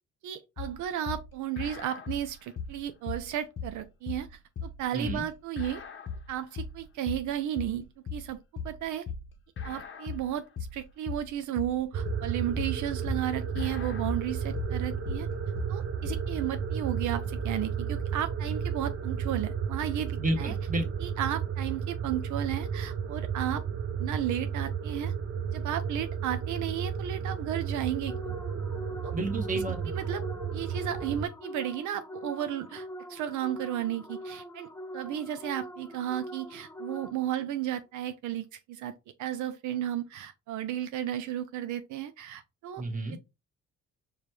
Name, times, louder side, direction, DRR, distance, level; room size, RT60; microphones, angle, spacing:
voice 1, 0.2-5.8 6.3-8.4 8.6-9.1 9.6-15.3 15.7-20.6 21.0-23.6 24.0-25.1 25.5-28.4 29.0-29.1 29.5-30.2 30.5-38.9 39.2-42.8, right 11 dB, 75° right, 0.4 m, -34 dB
sound 1, 0.6-16.3, left 5 dB, 40° left, 0.7 m, -39 dB
voice 2, 4.9-5.2 20.2-20.9 29.1-29.9 42.8-43.1, right 2 dB, 25° right, 1.1 m, -31 dB
sound 2, 11.9-31.3, right 7 dB, 45° right, 0.7 m, -33 dB
sound 3, 28.1-37.5, equal, 10° left, 0.3 m, -43 dB
4.9 x 2.2 x 3.0 m
cardioid pair, 90°, 30 cm